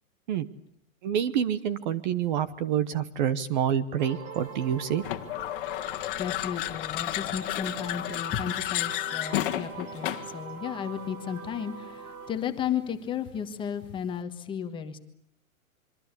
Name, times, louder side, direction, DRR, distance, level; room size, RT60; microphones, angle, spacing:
voice 1, 1.0-5.0, right 9 dB, 35° right, 15 dB, 1.1 m, -27 dB
sound 1, 4.0-12.3, right 4 dB, 85° right, 6.3 m, -43 dB
sound 2, 5.0-10.4, left 15 dB, 40° left, 1.7 m, -32 dB
voice 2, 6.2-15.0, left 8 dB, 10° left, 6 dB, 1.4 m, -34 dB
26.0 x 24.5 x 8.3 m, 0.67 s
hypercardioid pair, 165°, 42 cm